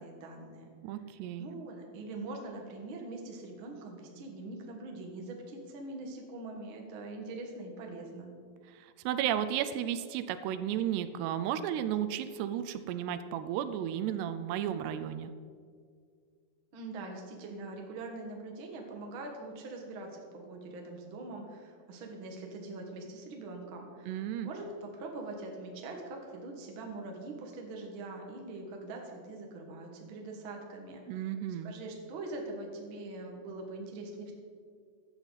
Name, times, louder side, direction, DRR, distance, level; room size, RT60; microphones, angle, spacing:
voice 1, 0.0-0.7 1.4-8.3 16.7-31.2 31.6-34.3, right 2 dB, 60° right, 1 dB, 1.3 m, -43 dB
voice 2, 0.8-1.5 8.7-15.3 24.1-24.5 31.1-31.7, right 10 dB, 85° right, 11 dB, 2.6 m, -33 dB
15.0 x 9.8 x 4.1 m, 2.1 s
omnidirectional pair, 4.8 m